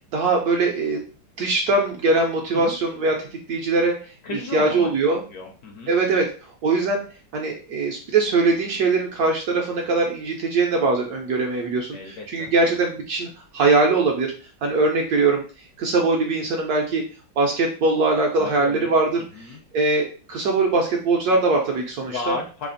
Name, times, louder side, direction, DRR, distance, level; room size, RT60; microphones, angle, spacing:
voice 1, 0.1-1.0 1.4-4.1 4.5-5.2 5.9-6.3 6.6-7.0 7.3-14.3 14.6-17.0 17.4-22.4, right 3 dB, 70° right, 1 dB, 0.9 m, -22 dB
voice 2, 4.2-5.9 11.9-12.5 18.3-18.9 19.3-19.6 22.0-22.7, left 3 dB, 70° left, 1 dB, 1.0 m, -34 dB
3.4 x 2.4 x 3.8 m, 0.37 s
omnidirectional pair, 2.1 m